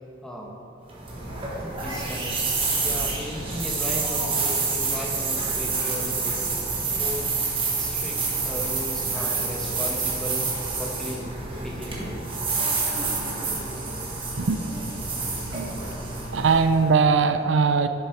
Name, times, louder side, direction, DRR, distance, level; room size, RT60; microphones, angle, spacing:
voice 1, 0.2-0.5 1.6-7.3 7.7-10.5 10.8-12.2, equal, 5° left, -2 dB, 1.2 m, -36 dB
sound 1, 0.9-17.0, right 4 dB, 30° right, 1.6 m, -28 dB
voice 2, 14.3-14.7 15.5-15.8 16.3-17.9, right 5 dB, 90° right, 10 dB, 0.5 m, -21 dB
11.5 x 7.2 x 4.5 m, 2.6 s
head